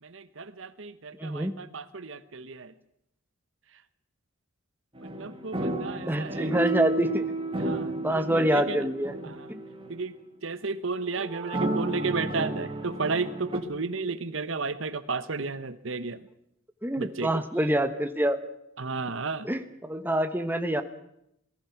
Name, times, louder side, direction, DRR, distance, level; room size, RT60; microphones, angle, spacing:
voice 1, 0.0-2.7 5.0-6.8 7.6-8.9 9.2-9.5 9.9-10.1 10.4-16.3 17.0-17.4 18.8-19.5, right 4 dB, 65° right, 13 dB, 1.1 m, -33 dB
voice 2, 1.1-1.6 5.6-5.8 6.1-7.2 8.0-9.1 9.5-9.6 16.8-18.4 19.4-20.8, right 1 dB, 10° right, 8 dB, 1.1 m, -26 dB
sound 1, 5.0-10.1 11.1-13.6, right 2 dB, 25° right, 2.1 m, -32 dB
25.5 x 18.5 x 5.9 m, 0.78 s
head